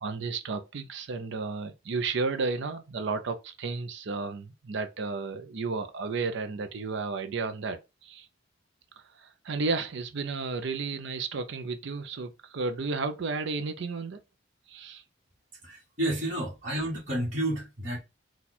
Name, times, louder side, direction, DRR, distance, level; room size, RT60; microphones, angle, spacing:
voice 1, 0.0-8.3 9.0-14.2 14.7-15.0, right 4 dB, 65° right, 0.5 m, -33 dB
voice 2, 15.6-18.0, right 1 dB, 40° right, 1.5 m, -30 dB
4.2 x 2.3 x 4.1 m
head